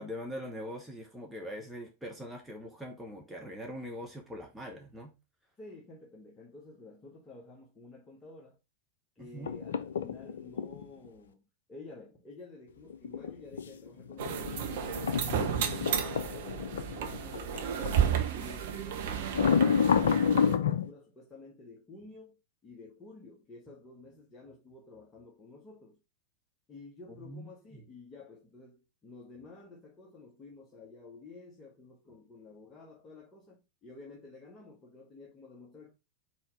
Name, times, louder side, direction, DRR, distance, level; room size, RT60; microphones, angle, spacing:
voice 1, 0.0-5.1 9.2-9.5 27.2-27.5, equal, 5° right, 1.2 m, -42 dB
voice 2, 5.6-8.6 9.1-15.7 16.1-18.1 18.3-26.0 26.7-35.9, left 3 dB, 20° left, 1.4 m, -51 dB
sound 1, 9.4-10.8 12.9-18.0 18.4-18.6 19.3-20.9, left 6 dB, 65° left, 0.5 m, -29 dB
sound 2, 14.2-20.6, right 8 dB, 55° right, 0.9 m, -33 dB
4.5 x 4.4 x 4.9 m
figure-of-eight pair, 90°, 0 cm